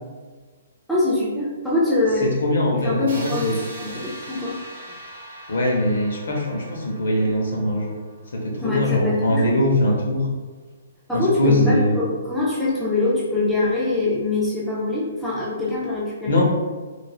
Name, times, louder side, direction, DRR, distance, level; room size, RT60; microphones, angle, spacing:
voice 1, 0.9-2.3 2.7-4.6 8.6-9.6 11.1-16.4, left 2 dB, ahead, -9 dB, 0.3 m, -23 dB
voice 2, 2.4-3.5 3.8-4.0 5.5-7.9 8.3-10.2 11.1-12.0 16.3-16.4, left 1 dB, 70° left, -1 dB, 0.7 m, -21 dB
sound 1, 3.1-8.9, right 1 dB, 55° right, 0.8 m, -41 dB
3.2 x 2.3 x 2.3 m, 1.4 s
hypercardioid pair, 180°, 0 cm